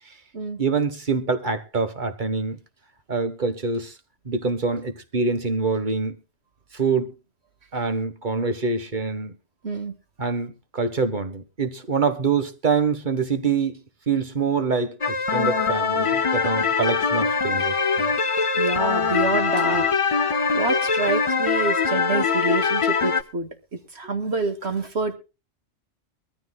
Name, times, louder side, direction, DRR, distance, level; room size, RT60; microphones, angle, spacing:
voice 1, 0.6-2.6 3.1-3.9 4.2-6.2 6.7-7.2 7.7-9.3 10.2-18.1, right 4 dB, 45° right, 1.6 m, -25 dB
sound 1, 15.0-23.2, left 5 dB, 35° left, 0.7 m, -22 dB
voice 2, 18.5-19.9 20.5-23.5 23.9-25.2, right 3 dB, 65° right, 2.4 m, -27 dB
23.0 x 14.0 x 2.4 m
omnidirectional pair, 1.2 m